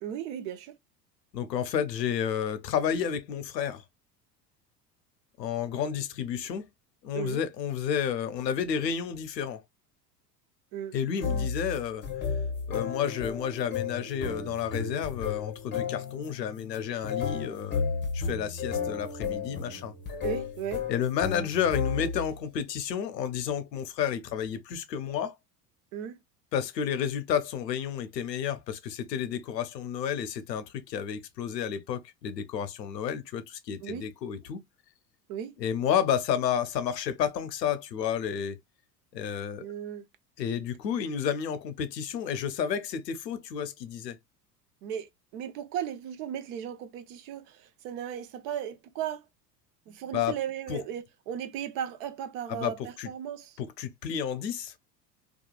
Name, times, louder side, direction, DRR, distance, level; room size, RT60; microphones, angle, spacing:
voice 1, 0.0-0.8 7.1-7.4 10.7-11.0 20.2-20.8 25.9-26.2 33.8-34.1 35.3-35.6 39.6-40.1 44.8-49.2 49.9-53.6, right 9 dB, 55° right, 0.6 m, -36 dB
voice 2, 1.3-3.8 5.4-6.7 7.0-9.6 10.9-12.0 12.7-17.8 18.1-19.9 20.9-25.3 26.5-34.6 35.6-38.6 39.1-39.7 40.4-44.2 50.1-50.4 50.7-50.8 52.5-52.7 53.0-53.1 53.6-54.8, left 8 dB, 90° left, 0.6 m, -31 dB
sound 1, 11.2-22.4, left 6 dB, 20° left, 0.8 m, -33 dB
2.9 x 2.3 x 2.3 m
hypercardioid pair, 80°, 48 cm